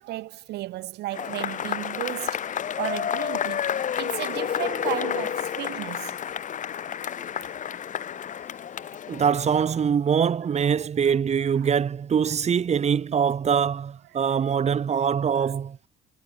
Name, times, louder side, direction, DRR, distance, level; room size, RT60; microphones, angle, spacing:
voice 1, 0.0-6.2 6.9-7.5 8.1-8.3 8.7-8.9 11.0-11.1 11.4-11.7 14.1-14.4 15.4-15.5, right 17 dB, 80° right, 5.8 m, -35 dB
Cheering / Applause / Crowd, 1.1-9.8, left 9 dB, 50° left, 4.1 m, -30 dB
voice 2, 9.1-15.8, right 7 dB, 40° right, 5.0 m, -23 dB
cardioid pair, 110°, 17 cm